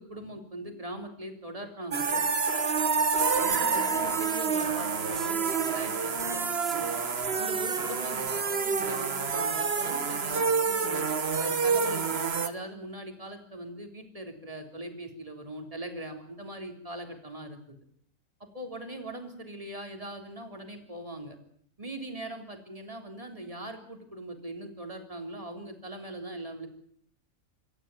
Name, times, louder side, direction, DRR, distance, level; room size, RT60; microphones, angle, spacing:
voice 1, 0.0-2.3 3.4-7.0 7.4-11.1 11.4-17.8 18.5-21.4 21.8-26.7, right 1 dB, 25° right, 4 dB, 3.8 m, -41 dB
sound 1, 1.9-12.5, right 5 dB, 45° right, 1.5 m, -28 dB
27.0 x 14.0 x 9.2 m, 0.65 s
omnidirectional pair, 1.5 m